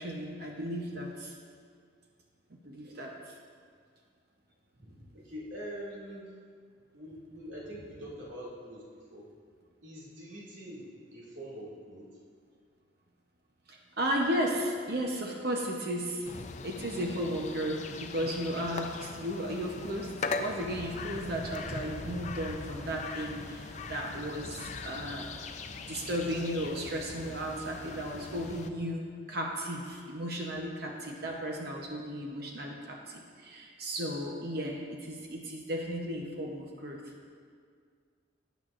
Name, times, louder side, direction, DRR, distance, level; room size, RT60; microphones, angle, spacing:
voice 1, 0.0-1.4 2.6-3.4 13.7-16.3 16.6-25.3 25.8-37.1, equal, 55° right, 0 dB, 0.8 m, -35 dB
voice 2, 4.8-6.3 6.9-9.3 9.8-10.8 11.1-12.1, equal, 80° right, -6 dB, 2.4 m, -44 dB
sound 1, 16.3-28.7, left 3 dB, 35° left, 0.4 m, -40 dB
12.5 x 9.1 x 2.5 m, 2.1 s
head